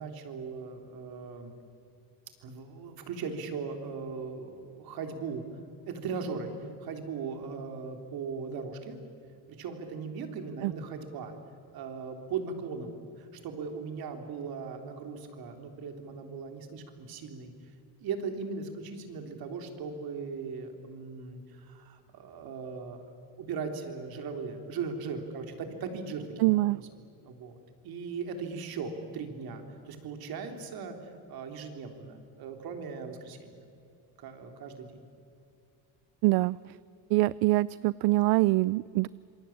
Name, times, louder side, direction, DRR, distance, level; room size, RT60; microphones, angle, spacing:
voice 1, 0.0-1.5 2.4-5.4 5.9-6.5 6.8-9.0 9.6-11.3 11.7-17.5 18.0-26.8 27.2-27.6 27.8-33.6 34.2-35.0, right 5 dB, 65° right, 5 dB, 3.8 m, -38 dB
voice 2, 26.4-26.8 36.2-36.8 37.1-39.1, right 19 dB, 80° right, 20 dB, 0.5 m, -24 dB
27.0 x 22.5 x 8.8 m, 2.6 s
cardioid pair, 125°, 39 cm